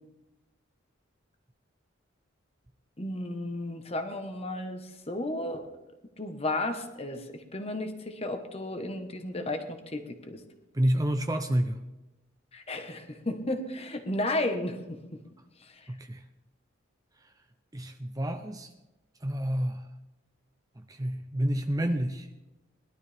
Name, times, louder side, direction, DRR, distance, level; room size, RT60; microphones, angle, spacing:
voice 1, 3.0-4.8 5.1-5.7 6.2-10.4 12.5-15.0, left 1 dB, 30° left, 6 dB, 1.3 m, -33 dB
voice 2, 10.7-11.8 15.9-16.2 17.7-18.7 19.2-19.9 20.8-22.3, right 1 dB, 20° right, 7 dB, 0.5 m, -29 dB
20.0 x 12.0 x 3.5 m, 1.0 s
head